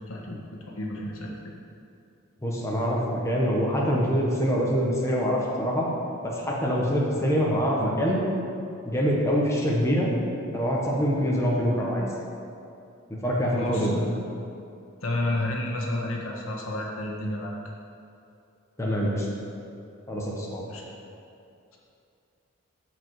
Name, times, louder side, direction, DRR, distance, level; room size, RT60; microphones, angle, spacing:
voice 1, 0.0-1.3 13.5-14.3 15.0-17.5 20.7-20.8, left 1 dB, 80° left, -2 dB, 1.6 m, -31 dB
voice 2, 2.4-5.9 6.2-8.2 8.8-10.1 10.5-12.1 13.2-14.0 18.8-19.2 20.1-20.6, equal, 15° left, -4 dB, 1.3 m, -25 dB
14.0 x 5.1 x 4.8 m, 2.6 s
head